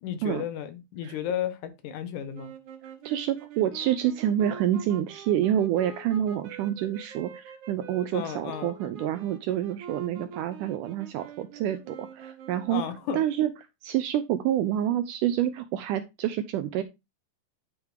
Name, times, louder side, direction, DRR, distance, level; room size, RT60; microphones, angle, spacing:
voice 1, 0.0-2.5 8.1-8.7 12.7-13.2, left 9 dB, 70° left, 2.0 m, -33 dB
sound 1, 2.3-13.1, right 5 dB, 60° right, 2.7 m, -45 dB
voice 2, 3.1-12.8 13.1-13.5 13.8-16.8, right 11 dB, 85° right, 1.9 m, -27 dB
10.5 x 3.5 x 4.8 m
omnidirectional pair, 4.2 m